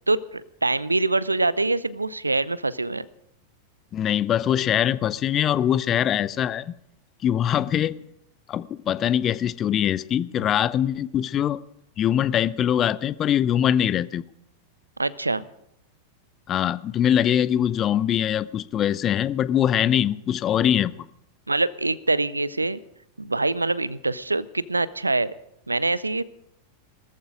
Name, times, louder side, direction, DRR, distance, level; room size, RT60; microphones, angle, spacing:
voice 1, 0.1-3.1 15.0-15.4 21.5-22.8 23.2-25.3 25.7-26.2, right 2 dB, 80° right, 0.6 m, -24 dB
voice 2, 3.9-6.7 7.2-7.9 8.5-11.6 12.0-14.2 16.5-21.1, left 10 dB, 30° left, 0.6 m, -22 dB
19.0 x 14.0 x 4.9 m
figure-of-eight pair, 90°, 0 cm